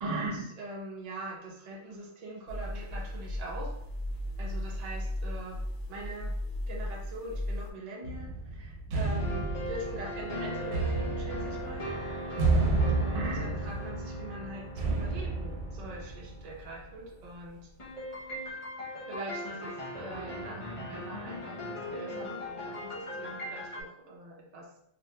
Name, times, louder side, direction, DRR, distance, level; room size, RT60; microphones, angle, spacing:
voice 1, 0.0-3.7 4.4-5.6 5.9-6.3 6.7-11.9 13.0-17.6 19.1-24.7, right 2 dB, 45° right, -2 dB, 0.5 m, -41 dB
sound 1, 2.5-7.7, left 1 dB, 70° left, 0.8 m, -36 dB
sound 2, 8.0-16.7, right 3 dB, 80° right, 1.0 m, -31 dB
sound 3, 9.2-16.9 17.8-23.8, equal, 45° left, 0.4 m, -39 dB
2.5 x 2.2 x 2.9 m, 0.71 s
omnidirectional pair, 1.4 m